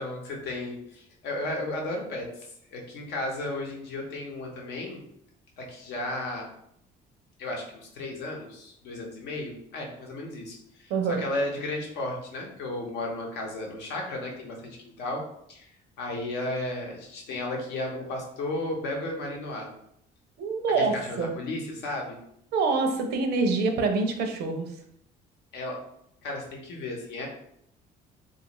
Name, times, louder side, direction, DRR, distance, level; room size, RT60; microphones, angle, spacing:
voice 1, 0.0-5.0 5.6-6.5 7.4-7.6 7.9-10.9 11.2-15.2 15.5-15.7 16.0-19.7 20.8-22.2 25.5-25.8 26.2-27.3, left 2 dB, 80° left, 0 dB, 0.8 m, -34 dB
voice 2, 10.9-11.2 20.4-21.3 22.5-24.7, right 4 dB, 75° right, 5 dB, 0.5 m, -26 dB
2.5 x 2.4 x 2.9 m, 0.73 s
cardioid pair, 110°, 17 cm